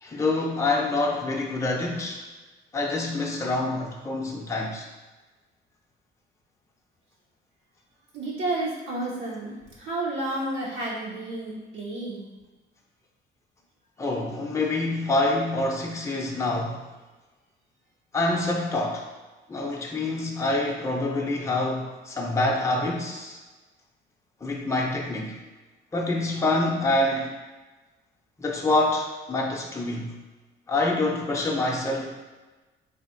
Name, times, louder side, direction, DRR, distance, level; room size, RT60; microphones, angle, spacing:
voice 1, 0.0-2.2 2.7-4.9 14.0-16.9 18.1-19.1 19.5-23.4 24.4-25.4 25.9-27.3 28.4-30.2 30.7-32.1, left 2 dB, 15° left, -1 dB, 0.6 m, -26 dB
voice 2, 8.1-12.2, right 2 dB, 80° right, -6 dB, 1.1 m, -31 dB
3.4 x 2.3 x 4.4 m, 1.2 s
cardioid pair, 90°, 20 cm